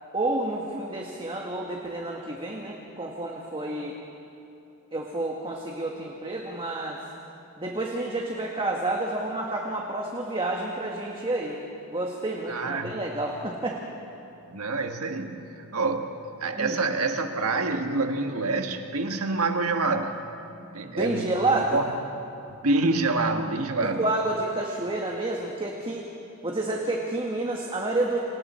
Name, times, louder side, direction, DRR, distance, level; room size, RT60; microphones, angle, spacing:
voice 1, 0.1-4.0 4.9-7.0 7.6-11.6 11.9-13.8 16.6-16.8 20.8-21.8 23.9-26.1 26.4-28.2, right 2 dB, 25° right, 0 dB, 1.6 m, -29 dB
voice 2, 12.5-13.0 14.5-16.1 16.4-20.2 20.7-21.3 21.5-21.8 22.6-24.1, right 3 dB, 70° right, 5 dB, 1.6 m, -27 dB
29.5 x 26.5 x 4.4 m, 2.8 s
head